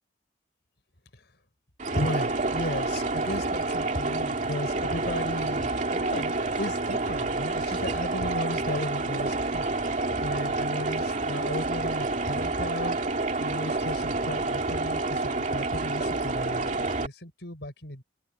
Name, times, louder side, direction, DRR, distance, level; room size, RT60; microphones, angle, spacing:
sound 1, 1.8-17.1, right 3 dB, 40° right, 2.5 m, -28 dB
voice 1, 1.9-13.0 13.4-18.0, left 1 dB, 65° left, 4.8 m, -35 dB
open air
head